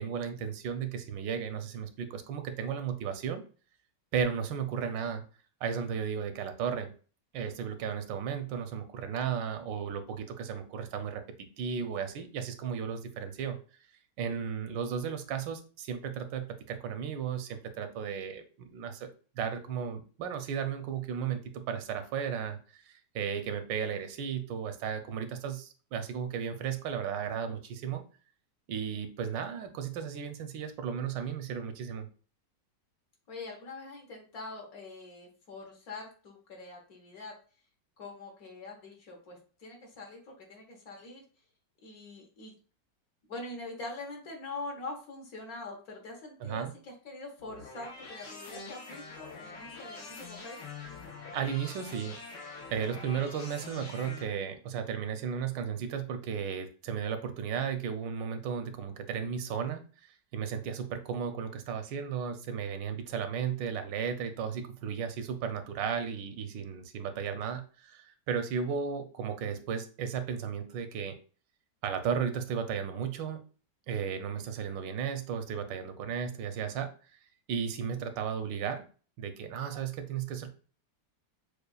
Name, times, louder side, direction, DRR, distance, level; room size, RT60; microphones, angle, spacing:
voice 1, 0.0-3.4 4.1-5.2 5.6-6.9 7.3-11.2 11.6-13.6 14.2-28.0 28.7-32.1 46.4-46.7 51.3-52.2 52.7-59.8 60.3-71.2 71.8-73.4 73.9-77.2 77.5-78.8 79.2-80.5, right 7 dB, 85° right, 8 dB, 1.3 m, -34 dB
voice 2, 33.3-37.3 38.0-41.2 41.8-42.5 43.3-50.6, left 2 dB, 60° left, 1 dB, 1.4 m, -44 dB
sound 1, 47.4-54.2, left 3 dB, 75° left, 1.8 m, -45 dB
6.4 x 2.4 x 2.3 m, 0.39 s
omnidirectional pair, 1.9 m